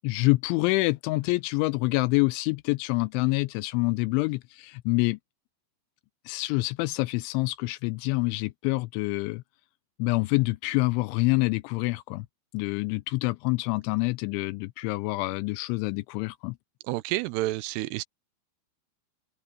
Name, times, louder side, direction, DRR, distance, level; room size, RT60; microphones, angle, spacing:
voice 1, 0.0-5.2 6.3-9.4 10.0-12.3 12.5-16.6, left 23 dB, 85° left, 2.9 m, -26 dB
voice 2, 16.9-18.0, right 17 dB, 85° right, 2.5 m, -29 dB
omnidirectional pair, 5.4 m